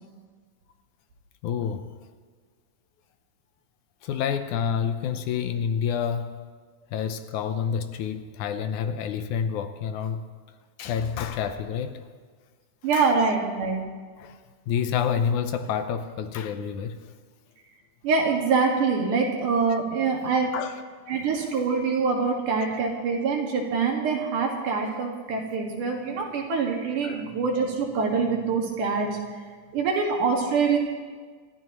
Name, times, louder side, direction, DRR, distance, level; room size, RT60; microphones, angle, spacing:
voice 1, 1.4-1.9 4.0-6.4 6.9-10.3 10.8-12.0 12.9-13.1 14.2-14.4 14.7-17.1 20.5-20.7 21.2-21.5 27.0-27.2, left 7 dB, 75° left, 8 dB, 2.1 m, -28 dB
voice 2, 12.8-13.8 18.0-20.5 21.1-29.2 29.7-30.8, right 5 dB, 75° right, 0 dB, 3.4 m, -25 dB
26.5 x 13.5 x 3.1 m, 1.6 s
omnidirectional pair, 3.7 m